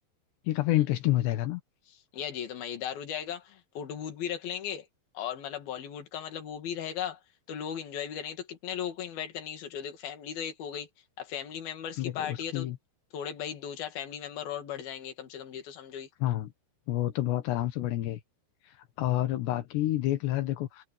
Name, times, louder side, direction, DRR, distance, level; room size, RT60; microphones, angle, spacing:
voice 1, 0.5-1.6 12.0-12.8 16.2-16.5 16.9-18.2 18.7-20.9, left 15 dB, 85° left, 3.6 m, -29 dB
voice 2, 1.9-4.9 5.1-7.2 7.5-10.9 11.2-12.8 13.1-16.1, left 9 dB, 65° left, 4.1 m, -37 dB
omnidirectional pair, 4.8 m